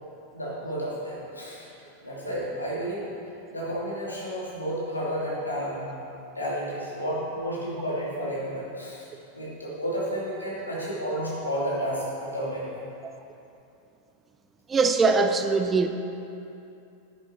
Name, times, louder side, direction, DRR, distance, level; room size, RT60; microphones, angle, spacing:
voice 1, 0.3-1.7 2.0-3.0 3.5-5.9 6.4-9.1 9.3-13.0 15.0-15.1, equal, 80° left, -6 dB, 2.7 m, -31 dB
voice 2, 14.7-15.9, right 4 dB, 20° right, 7 dB, 0.5 m, -22 dB
10.0 x 8.8 x 4.4 m, 2.7 s
figure-of-eight pair, 90°, 0 cm